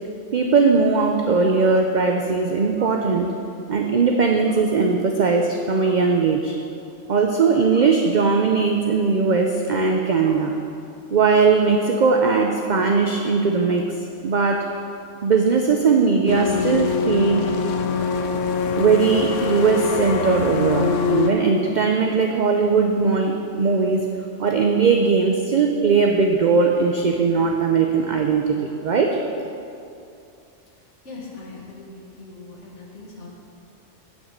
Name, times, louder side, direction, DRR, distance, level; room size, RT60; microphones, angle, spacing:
voice 1, 0.3-3.3 3.7-6.5 7.1-10.6 11.1-13.9 14.2-14.6 15.2-17.4 18.8-24.0 24.4-29.2, right 4 dB, 50° right, 2 dB, 0.6 m, -19 dB
sound 1, 16.3-21.3, left 5 dB, 90° left, 1.0 m, -24 dB
voice 2, 31.0-33.3, left 3 dB, 70° left, -3 dB, 2.0 m, -40 dB
9.5 x 5.3 x 7.4 m, 2.6 s
omnidirectional pair, 1.3 m